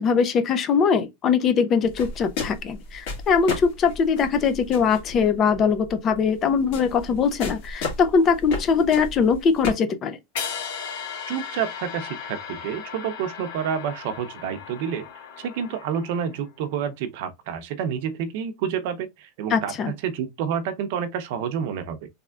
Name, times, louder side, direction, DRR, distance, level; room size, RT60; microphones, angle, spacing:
voice 1, 0.0-10.2 19.5-19.9, left 6 dB, 25° left, 0.4 m, -21 dB
sound 1, 1.8-9.7, left 3 dB, 55° left, 1.8 m, -34 dB
sound 2, 10.4-16.5, left 7 dB, 75° left, 1.3 m, -36 dB
voice 2, 11.3-15.1 15.4-22.1, right 8 dB, 55° right, 0.6 m, -29 dB
3.4 x 3.4 x 2.3 m
supercardioid pair, 160°, 0 cm